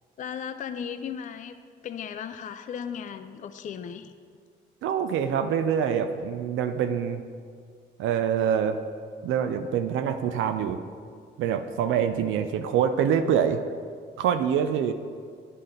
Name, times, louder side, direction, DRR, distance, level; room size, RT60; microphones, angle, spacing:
voice 1, 0.2-1.5 1.8-4.1, left 7 dB, 40° left, 10 dB, 0.4 m, -36 dB
voice 2, 4.8-7.2 8.0-8.8 9.2-10.8 11.4-13.6 14.2-14.9, right 8 dB, 80° right, 8 dB, 0.4 m, -25 dB
10.5 x 4.1 x 3.8 m, 2.1 s
cardioid pair, 90°, 20 cm